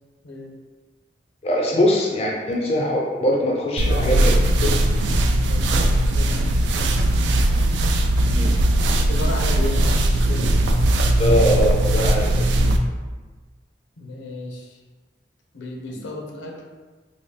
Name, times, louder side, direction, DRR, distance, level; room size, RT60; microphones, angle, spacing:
voice 1, 1.4-4.3 4.6-4.9 8.3-8.5 11.2-12.5, left 1 dB, 35° left, -1 dB, 0.3 m, -22 dB
sound 1, 3.8-12.8, right 1 dB, 75° right, 0.3 m, -19 dB
voice 2, 5.4-6.5 6.7-7.1 7.4-8.0 9.1-10.7 14.0-14.8 15.5-16.6, left 1 dB, 85° left, 0 dB, 0.6 m, -34 dB
3.9 x 2.1 x 3.2 m, 1.3 s
head